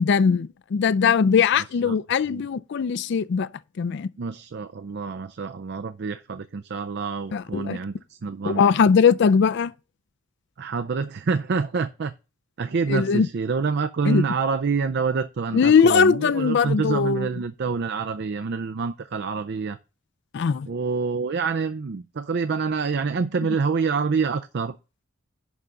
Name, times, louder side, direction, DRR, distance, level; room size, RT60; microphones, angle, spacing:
voice 1, 0.0-3.5 3.8-4.1 7.3-7.8 8.4-9.7 12.9-13.3 14.0-14.2 15.5-17.3 20.3-20.7, left 6 dB, 60° left, 0.4 m, -20 dB
voice 2, 4.2-8.6 10.6-12.1 12.6-19.8 20.7-24.8, right 5 dB, 55° right, 0.5 m, -27 dB
11.0 x 3.7 x 6.8 m
head